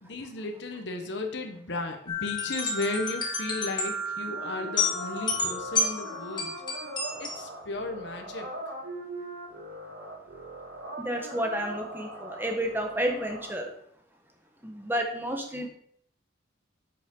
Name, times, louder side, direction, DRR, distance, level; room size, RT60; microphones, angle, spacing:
voice 1, 0.0-6.6 7.2-8.5, left 2 dB, 60° left, 4 dB, 1.3 m, -35 dB
sound 1, 2.1-7.4, left 3 dB, 25° left, 2.0 m, -31 dB
sound 2, 4.2-13.5, right 1 dB, 85° right, 4.8 m, -41 dB
voice 2, 11.0-13.7 14.6-15.7, equal, 10° right, 3 dB, 1.4 m, -31 dB
8.1 x 6.9 x 5.5 m, 0.66 s
head